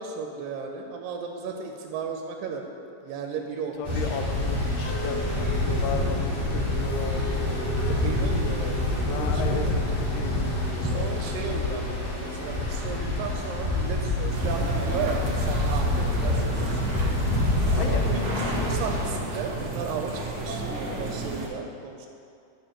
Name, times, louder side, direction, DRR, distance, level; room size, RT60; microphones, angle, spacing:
voice 1, 0.0-2.6 3.0-4.1 8.0-9.9 10.8-16.9 17.7-22.1, right 5 dB, 90° right, 2 dB, 2.3 m, -35 dB
voice 2, 3.8-5.3 5.5-7.4 9.1-11.1 17.7-18.1, left 5 dB, 80° left, 5 dB, 1.9 m, -35 dB
sound 1, 3.8-19.0, left 1 dB, 45° left, 2.8 m, -27 dB
sound 2, 14.3-21.5, right 2 dB, 65° right, 1.2 m, -32 dB
10.0 x 6.8 x 2.9 m, 2.4 s
omnidirectional pair, 3.9 m